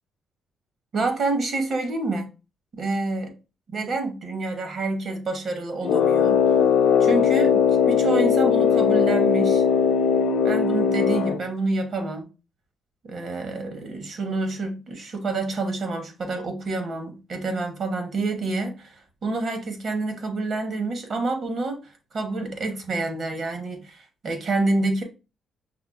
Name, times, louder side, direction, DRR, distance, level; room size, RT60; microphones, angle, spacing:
voice 1, 0.9-2.3 2.7-3.3 3.7-6.4 7.0-9.6 10.4-12.2 13.0-21.8 22.1-25.0, right 3 dB, 55° right, 1.0 m, -28 dB
Brass instrument, 5.8-11.4, left 7 dB, 80° left, 0.4 m, -19 dB
5.4 x 2.1 x 2.4 m
cardioid pair, 90°, 0 cm